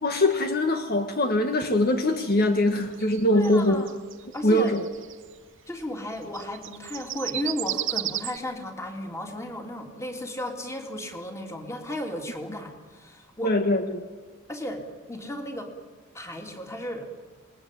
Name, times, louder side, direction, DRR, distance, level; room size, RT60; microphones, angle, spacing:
voice 1, 0.0-3.8 4.4-4.8 13.4-14.1, left 1 dB, 50° left, 7 dB, 1.6 m, -23 dB
sound 1, 2.0-5.3 6.2-8.4, right 13 dB, 60° right, 1.1 m, -33 dB
voice 2, 3.3-3.9 4.3-4.7 5.7-13.5 14.5-15.7 16.1-17.1, equal, 15° left, 3 dB, 3.2 m, -34 dB
28.0 x 20.5 x 8.6 m, 1.4 s
head